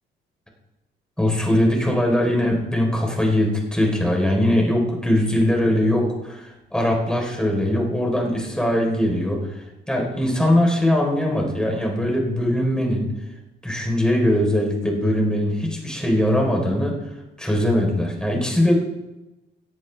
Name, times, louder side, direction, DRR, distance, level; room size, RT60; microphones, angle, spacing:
voice 1, 1.2-9.5 9.9-13.1 13.6-17.0 17.4-18.7, left 1 dB, 5° left, 0 dB, 3.7 m, -21 dB
17.5 x 10.5 x 3.3 m, 1.0 s
cardioid pair, 90°, 20 cm